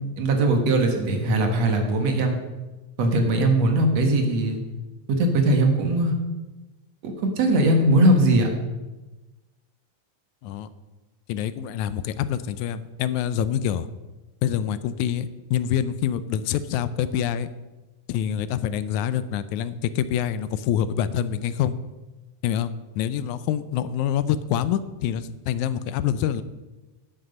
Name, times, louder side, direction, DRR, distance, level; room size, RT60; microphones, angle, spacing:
voice 1, 0.0-2.4 3.0-4.6 5.1-6.1 7.0-8.6, right 1 dB, 65° right, 4 dB, 2.5 m, -20 dB
voice 2, 11.3-13.9 14.4-17.5 18.1-21.7 22.4-26.4, left 10 dB, 85° left, 14 dB, 2.0 m, -26 dB
11.5 x 8.9 x 5.3 m, 1.1 s
omnidirectional pair, 3.4 m